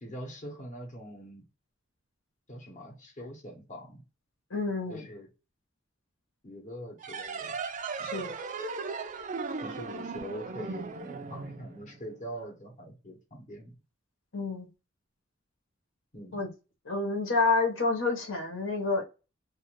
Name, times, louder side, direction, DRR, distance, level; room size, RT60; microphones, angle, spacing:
voice 1, 0.0-1.4 2.5-4.0 4.9-5.3 6.4-7.6 8.0-8.2 9.6-13.7 16.1-16.5, equal, 40° left, 1.0 m, -43 dB
voice 2, 4.5-5.1 8.0-8.3 14.3-14.7 16.3-16.5 16.9-19.0, left 3 dB, 75° left, 1.1 m, -28 dB
sound 1, 7.0-12.2, right 4 dB, 40° right, 0.4 m, -37 dB
2.5 x 2.4 x 3.0 m
head